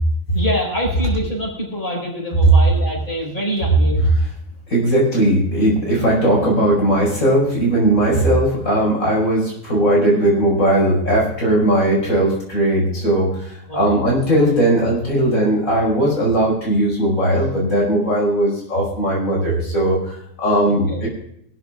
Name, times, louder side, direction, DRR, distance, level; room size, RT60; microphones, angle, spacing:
voice 1, 0.3-4.1 13.7-14.0 20.6-21.0, equal, 35° left, -3 dB, 5.8 m, -25 dB
voice 2, 4.7-21.1, right 1 dB, 90° left, -4 dB, 5.8 m, -18 dB
22.5 x 13.5 x 2.5 m, 0.76 s
omnidirectional pair, 1.4 m